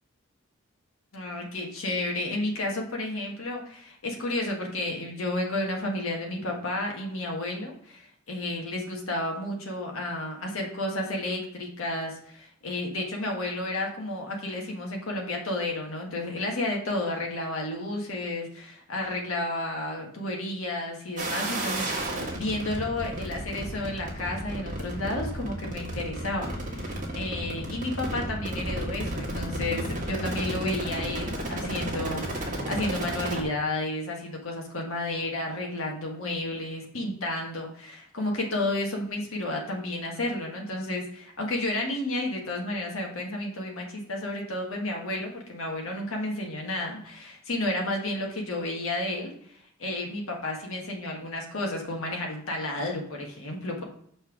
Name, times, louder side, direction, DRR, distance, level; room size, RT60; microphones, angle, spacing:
voice 1, 1.1-53.8, left 1 dB, 85° left, 0 dB, 1.5 m, -32 dB
sound 1, 21.2-33.4, right 1 dB, 40° right, 1.6 m, -33 dB
5.7 x 4.4 x 5.9 m, 0.65 s
head